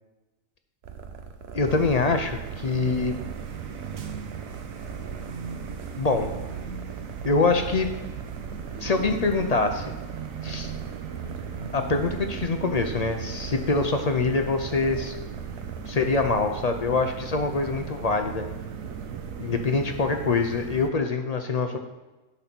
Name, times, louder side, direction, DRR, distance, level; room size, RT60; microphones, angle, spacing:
sound 1, 0.8-20.1, right 6 dB, 60° right, 0.8 m, -41 dB
voice 1, 1.5-3.1 6.0-6.3 7.2-7.9 8.8-9.9 10.4-10.7 11.7-15.1 15.9-18.4 19.4-21.8, left 3 dB, 50° left, 6 dB, 0.5 m, -24 dB
sound 2, 1.6-20.9, right 6 dB, 85° right, 1.1 m, -37 dB
9.7 x 4.1 x 6.0 m, 1.1 s
omnidirectional pair, 1.4 m